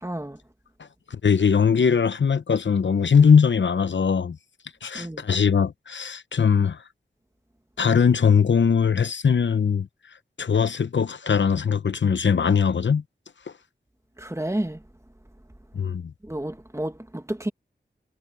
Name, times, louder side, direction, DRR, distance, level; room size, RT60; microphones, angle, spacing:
voice 1, 0.0-0.4 4.9-5.3 14.2-14.8 16.2-17.5, right 1 dB, 15° right, 1.9 m, -30 dB
voice 2, 1.1-4.4 4.8-6.8 7.8-9.9 10.4-13.0 15.7-16.1, left 6 dB, 70° left, 0.8 m, -20 dB
cardioid pair, 45°, 19 cm